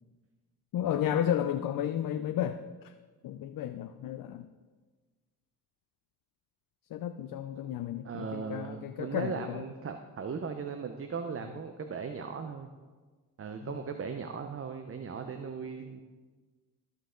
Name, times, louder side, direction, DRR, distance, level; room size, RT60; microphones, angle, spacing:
voice 1, 0.7-2.9 3.2-4.5 6.9-9.6 13.6-13.8, left 10 dB, 65° left, 9 dB, 0.5 m, -33 dB
voice 2, 8.0-12.7 13.4-16.0, right 6 dB, 40° right, 7 dB, 0.7 m, -38 dB
14.0 x 5.5 x 3.8 m, 1.4 s
cardioid pair, 75°, 36 cm